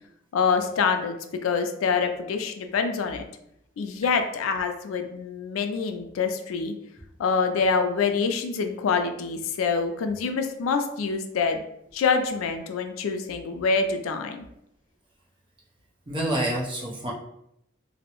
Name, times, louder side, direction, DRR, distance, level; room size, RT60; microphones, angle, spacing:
voice 1, 0.3-1.2 1.4-3.2 3.8-6.7 7.2-11.6 11.9-14.4, left 5 dB, 80° left, 7 dB, 0.3 m, -26 dB
voice 2, 16.1-17.1, right 1 dB, 25° right, -3 dB, 0.6 m, -27 dB
2.6 x 2.0 x 2.8 m, 0.78 s
head